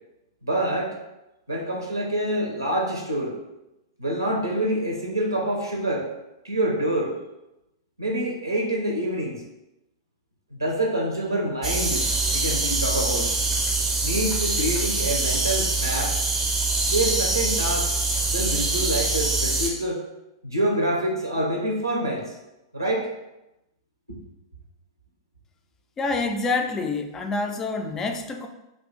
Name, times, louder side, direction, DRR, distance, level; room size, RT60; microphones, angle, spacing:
voice 1, 0.4-0.9 1.5-3.4 4.0-6.1 6.4-7.1 8.0-9.4 10.5-12.1 12.3-13.3 14.0-16.2 16.9-17.9 18.3-20.0 20.4-22.3 22.7-23.1 24.1-24.2, right 1 dB, 90° right, -1 dB, 0.6 m, -26 dB
sound 1, 11.6-19.7, right 3 dB, 15° right, 0.6 m, -24 dB
voice 2, 26.0-28.5, left 3 dB, 20° left, 5 dB, 0.3 m, -27 dB
2.4 x 2.3 x 3.7 m, 0.94 s
figure-of-eight pair, 100°, 2 cm